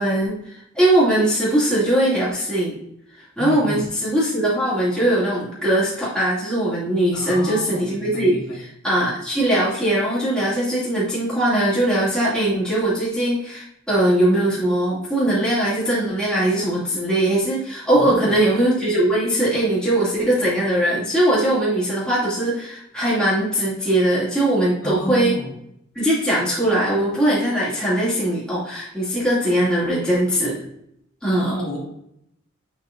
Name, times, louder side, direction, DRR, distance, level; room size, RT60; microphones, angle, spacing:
voice 1, 0.0-2.8 3.4-25.3 25.9-30.6 31.2-31.5, right 1 dB, 5° left, -10 dB, 2.4 m, -20 dB
voice 2, 3.4-3.9 7.1-8.6 17.9-18.4 24.8-25.5 31.3-31.9, equal, 85° left, -3 dB, 2.4 m, -30 dB
7.5 x 5.5 x 2.5 m, 0.77 s
head